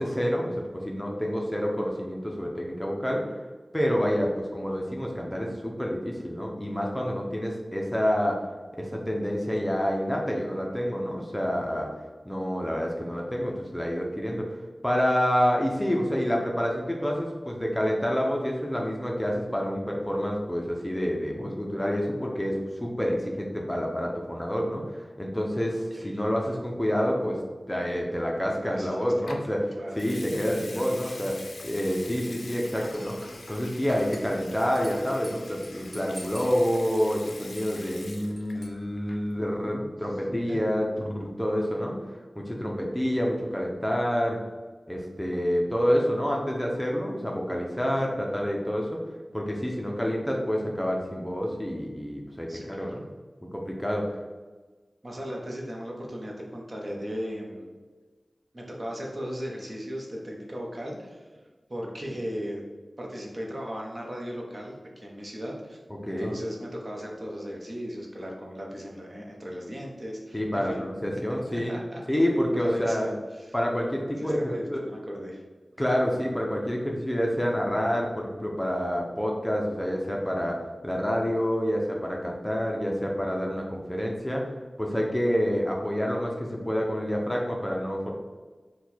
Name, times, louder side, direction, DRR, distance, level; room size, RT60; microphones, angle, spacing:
voice 1, 0.0-3.2 3.7-8.4 8.8-11.9 12.3-14.6 14.8-27.4 27.7-31.4 31.6-33.2 33.5-44.4 44.9-49.0 49.3-53.0 53.5-54.1 65.9-66.3 70.3-71.7 72.1-73.1 73.5-74.8 75.8-80.6 80.8-84.5 84.8-88.1, equal, 10° left, -1 dB, 0.6 m, -28 dB
voice 2, 28.6-29.3 29.8-29.9 30.3-31.2 39.3-39.9 40.3-40.7 52.5-53.0 53.9-54.0 55.0-57.7 58.5-61.3 61.7-62.6 63.0-70.8 71.1-72.0 72.5-73.5 74.1-75.4, equal, 40° right, -1 dB, 0.8 m, -37 dB
Water tap faucet / Sink (filling or washing) / Liquid, 29.3-29.5 29.9-38.7 39.0-39.3, left 3 dB, 90° left, 0.4 m, -45 dB
Dishes pots and pans / Glass, 32.7-39.7, equal, 10° right, 1.1 m, -50 dB
4.5 x 2.3 x 4.1 m, 1.3 s
wide cardioid pair, 75°, 0 cm